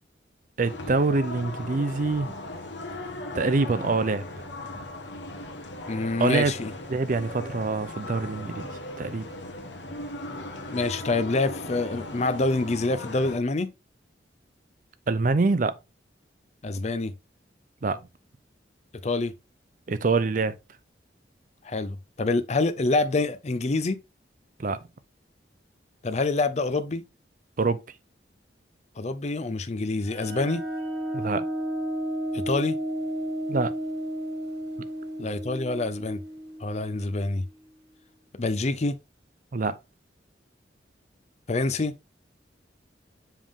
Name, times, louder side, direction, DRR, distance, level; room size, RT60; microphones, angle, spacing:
sound 1, 0.6-13.4, left 2 dB, 80° left, 1.3 m, -38 dB
voice 1, 0.6-2.3 3.3-4.2 4.7-4.8 6.2-6.5 6.9-8.7 9.0-9.3 15.1-15.8 17.8-18.0 19.9-20.6 24.6-24.8 27.6-27.8 31.1-31.5 33.5-33.7 39.5-39.8, right 3 dB, 45° right, 0.5 m, -25 dB
voice 2, 5.9-6.7 10.7-13.7 16.6-17.1 19.0-19.3 21.6-24.0 26.0-27.0 29.0-30.6 32.3-32.8 35.2-36.2 36.6-37.4 38.4-39.0 41.5-41.9, left 3 dB, 40° left, 0.5 m, -26 dB
sound 2, 30.1-37.5, right 1 dB, 70° right, 1.9 m, -33 dB
7.3 x 3.5 x 3.6 m
head